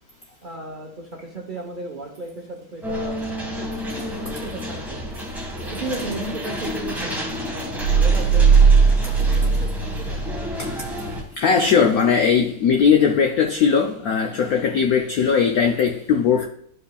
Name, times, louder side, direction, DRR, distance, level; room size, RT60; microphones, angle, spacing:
voice 1, 0.4-5.0 5.7-7.1 7.5-8.6 9.1-10.5 10.8-11.0 11.9-12.0, right 2 dB, 65° right, 0.4 m, -35 dB
sound 1, 2.8-11.2, left 1 dB, ahead, 1.2 m, -30 dB
sound 2, 7.8-10.5, right 5 dB, 85° right, 0.8 m, -17 dB
voice 2, 10.6-10.9 11.4-16.5, left 6 dB, 80° left, 0.8 m, -19 dB
11.5 x 4.8 x 2.3 m
omnidirectional pair, 2.3 m